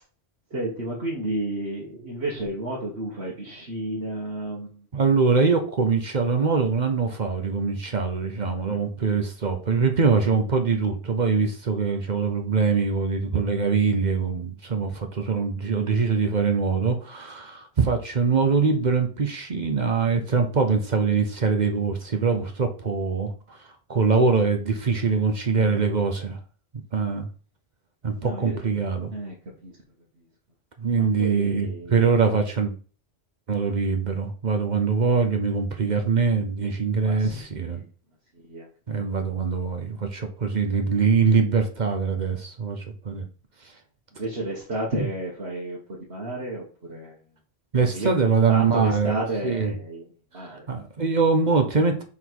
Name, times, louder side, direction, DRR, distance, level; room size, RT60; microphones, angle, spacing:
voice 1, 0.5-4.9 8.7-8.8 25.6-25.8 28.2-28.6 29.1-29.4 29.6-29.7 31.0-32.1 37.0-37.8 38.3-38.7 44.1-45.8 46.1-47.2 47.9-48.1 48.5-50.0 50.3-50.7, right 1 dB, 70° right, -5 dB, 1.8 m, -32 dB
voice 2, 4.9-23.6 23.9-26.4 26.9-27.3 28.0-29.1 30.8-32.7 33.5-37.8 38.9-43.3 47.7-49.7 50.4-52.0, right 5 dB, 45° right, 5 dB, 0.9 m, -23 dB
5.9 x 3.8 x 4.6 m, 0.40 s
omnidirectional pair, 1.1 m